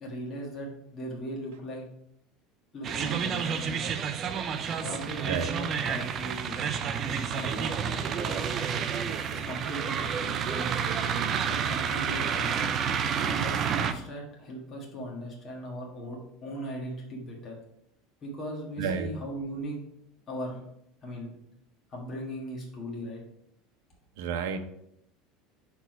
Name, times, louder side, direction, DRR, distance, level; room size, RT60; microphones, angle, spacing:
voice 1, 0.0-1.8 2.7-3.9 4.8-8.8 9.3-10.8 11.5-12.7 13.2-17.5 18.2-19.8 20.3-20.6 21.0-21.4 21.9-23.2, equal, 25° left, -3 dB, 1.5 m, -39 dB
sound 1, 2.8-13.9, right 7 dB, 25° right, 0.4 m, -30 dB
voice 2, 18.8-19.1 24.2-24.6, right 6 dB, 80° right, 8 dB, 0.7 m, -30 dB
5.6 x 4.6 x 4.7 m, 0.76 s
cardioid pair, 175°, 0 cm